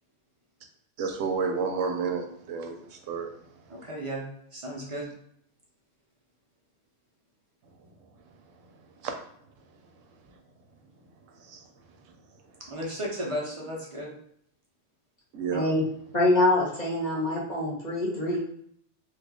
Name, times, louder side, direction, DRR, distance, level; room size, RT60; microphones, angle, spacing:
voice 1, 1.0-3.3 9.0-9.2 11.4-11.6 15.3-15.7, right 5 dB, 90° right, 4 dB, 1.0 m, -30 dB
voice 2, 3.7-4.2 4.5-5.1 12.6-14.1, equal, 35° right, -3 dB, 0.6 m, -34 dB
voice 3, 15.5-15.8 16.1-18.4, left 2 dB, 35° left, -6 dB, 1.0 m, -25 dB
2.9 x 2.4 x 3.5 m, 0.67 s
omnidirectional pair, 1.3 m